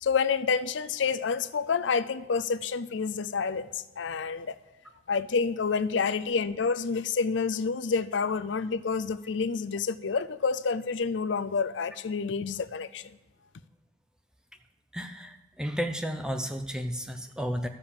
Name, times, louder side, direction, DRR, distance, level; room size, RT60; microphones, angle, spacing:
voice 1, 0.0-4.6 5.1-13.2, left 5 dB, 75° left, 15 dB, 0.5 m, -28 dB
voice 2, 14.9-17.7, equal, 5° right, 6 dB, 0.7 m, -33 dB
13.0 x 6.9 x 7.2 m, 1.1 s
head